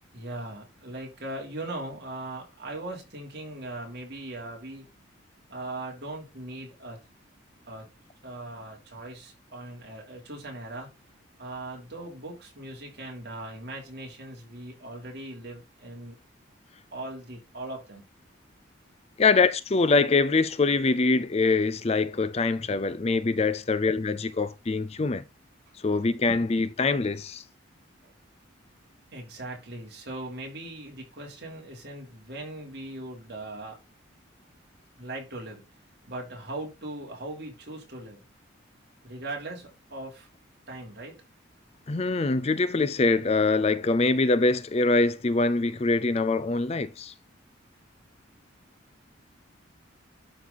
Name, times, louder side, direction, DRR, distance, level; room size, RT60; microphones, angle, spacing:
voice 1, 0.1-4.9 5.5-7.0 7.7-7.9 8.2-10.9 11.4-16.2 16.9-18.0 28.0-28.1 29.1-33.8 35.0-35.6 36.1-38.2 39.0-40.3 40.7-41.2, right 2 dB, 55° right, 3.4 m, -39 dB
voice 2, 19.2-25.2 25.8-27.4 41.9-47.1, left 3 dB, 30° left, 0.4 m, -24 dB
11.5 x 4.3 x 4.0 m
head